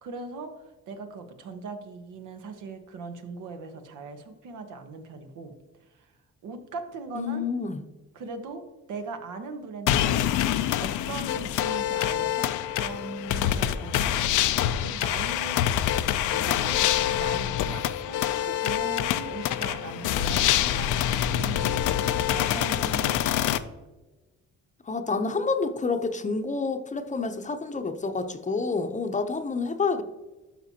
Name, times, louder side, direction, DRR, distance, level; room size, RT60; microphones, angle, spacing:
voice 1, 0.0-5.5 5.9-6.1 6.4-7.5 8.1-8.6 8.9-10.3 10.8-14.2 14.8-15.7 16.3-20.9 21.3-21.9 22.2-23.7, right 4 dB, 80° right, 7 dB, 1.1 m, -39 dB
voice 2, 7.2-7.8 24.9-30.0, left 4 dB, 25° left, 8 dB, 0.7 m, -28 dB
sound 1, 9.9-23.6, left 11 dB, 80° left, 0.5 m, -26 dB
11.5 x 5.8 x 2.8 m, 1.2 s
cardioid pair, 90°, 30 cm